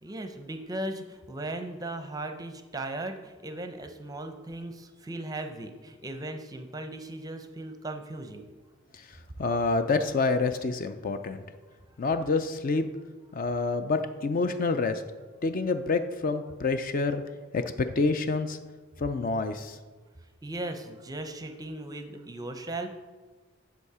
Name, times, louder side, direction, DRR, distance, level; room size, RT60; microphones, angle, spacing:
voice 1, 0.0-8.4 20.4-22.9, right 2 dB, 20° right, 7 dB, 0.6 m, -37 dB
voice 2, 9.4-11.4 12.0-12.9 13.3-15.0 15.4-17.2 17.5-18.6 19.0-19.8, left 3 dB, 40° left, 9 dB, 0.4 m, -27 dB
8.2 x 6.3 x 4.8 m, 1.3 s
head